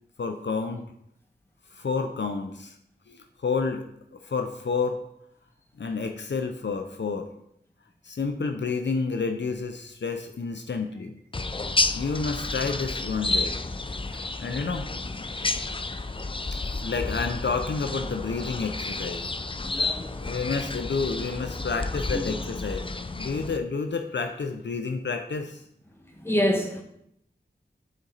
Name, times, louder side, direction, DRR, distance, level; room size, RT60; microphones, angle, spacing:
voice 1, 0.2-0.9 1.7-2.8 3.1-3.9 4.1-5.0 5.8-7.3 8.0-11.2 11.9-13.6 14.1-14.9 16.7-19.2 20.2-22.9 23.2-25.6, left 4 dB, 70° left, 0.6 m, -30 dB
sound 1, 11.3-23.6, left 3 dB, 30° left, 0.5 m, -31 dB
voice 2, 15.3-15.8 19.7-20.2 22.1-22.2 26.1-26.8, equal, 10° left, 1.7 m, -28 dB
11.0 x 4.2 x 4.0 m
wide cardioid pair, 45°, 19 cm